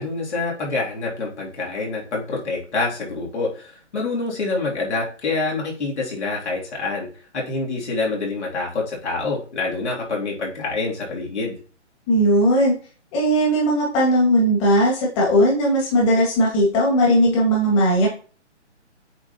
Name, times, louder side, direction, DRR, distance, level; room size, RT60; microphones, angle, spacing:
voice 1, 0.0-7.1 7.3-11.6, left 3 dB, 65° left, -3 dB, 2.9 m, -26 dB
voice 2, 12.1-12.7 13.1-18.1, equal, 25° left, -3 dB, 2.1 m, -18 dB
8.4 x 4.0 x 2.9 m, 0.39 s
hypercardioid pair, 150°, 36 cm